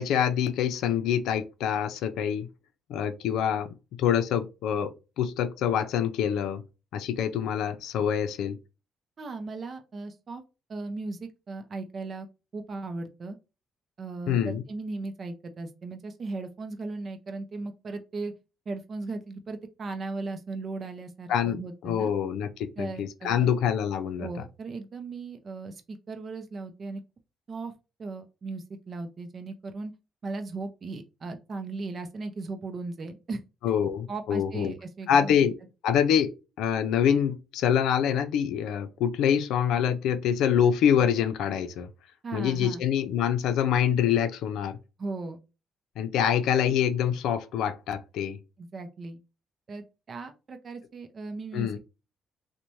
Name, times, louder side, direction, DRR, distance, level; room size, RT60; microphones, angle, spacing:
voice 1, 0.0-2.5 2.9-4.9 5.2-6.6 6.9-8.6 14.3-14.6 21.3-21.6 21.8-24.3 33.6-34.7 35.1-35.5 35.8-41.9 42.3-44.8 46.0-48.4 51.5-51.8, left 8 dB, 85° left, 0.4 m, -25 dB
voice 2, 9.2-10.4 10.7-12.3 12.5-13.4 14.0-18.3 18.7-22.1 22.8-23.5 24.2-27.0 27.5-27.7 28.0-29.9 30.2-33.4 34.1-35.5 42.2-42.8 45.0-45.4 48.6-49.2 49.7-51.8, right 3 dB, 45° right, 0.5 m, -37 dB
3.0 x 2.1 x 2.6 m
cardioid pair, 90°, 0 cm